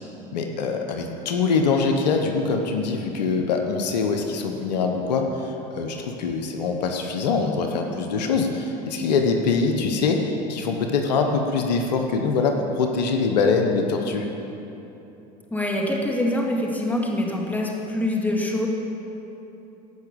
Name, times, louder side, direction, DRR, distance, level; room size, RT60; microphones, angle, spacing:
voice 1, 0.3-10.2 10.5-14.3, left 4 dB, 85° left, 4 dB, 1.1 m, -23 dB
voice 2, 15.5-18.7, left 1 dB, 10° left, -1 dB, 2.2 m, -25 dB
15.0 x 5.8 x 6.9 m, 3.0 s
hypercardioid pair, 85°, 21 cm